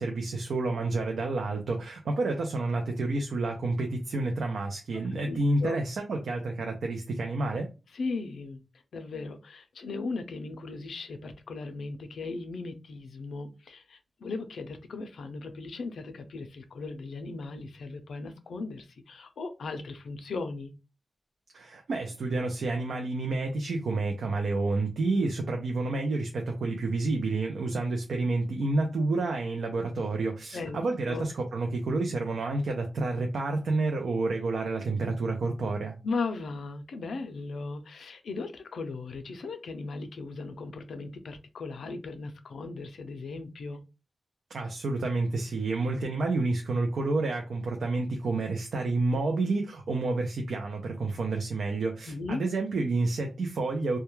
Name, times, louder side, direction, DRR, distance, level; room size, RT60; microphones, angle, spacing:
voice 1, 0.0-7.7 21.5-35.9 44.5-54.0, right 3 dB, 80° right, 0.4 m, -29 dB
voice 2, 5.3-5.8 7.9-8.6 8.9-20.7 30.5-31.3 36.0-43.8 52.1-52.4, left 3 dB, 80° left, 0.4 m, -37 dB
2.2 x 2.1 x 3.0 m
wide cardioid pair, 150°, 0 cm